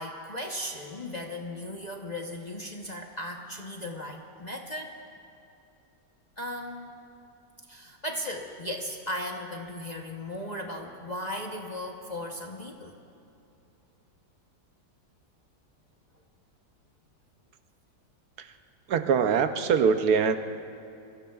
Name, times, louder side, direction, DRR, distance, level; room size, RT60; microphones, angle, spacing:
voice 1, 0.0-4.9 6.4-6.9 7.7-13.0, left 1 dB, 35° left, 1 dB, 0.8 m, -36 dB
voice 2, 18.9-20.4, right 6 dB, 70° right, 8 dB, 1.1 m, -23 dB
26.5 x 23.0 x 2.4 m, 2.8 s
omnidirectional pair, 1.8 m